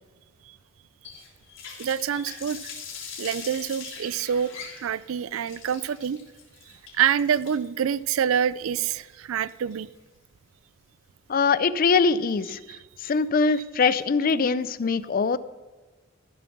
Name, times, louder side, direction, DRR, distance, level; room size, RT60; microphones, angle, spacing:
Water tap faucet, 1.0-10.0, left 6 dB, 60° left, 3.2 m, -42 dB
voice 1, 1.8-2.7 3.2-6.2 7.0-9.9 12.7-12.8, right 8 dB, 70° right, 18 dB, 0.4 m, -26 dB
voice 2, 11.3-12.6 13.0-15.4, left 4 dB, 40° left, 16 dB, 0.4 m, -22 dB
14.0 x 7.0 x 6.1 m, 1.3 s
head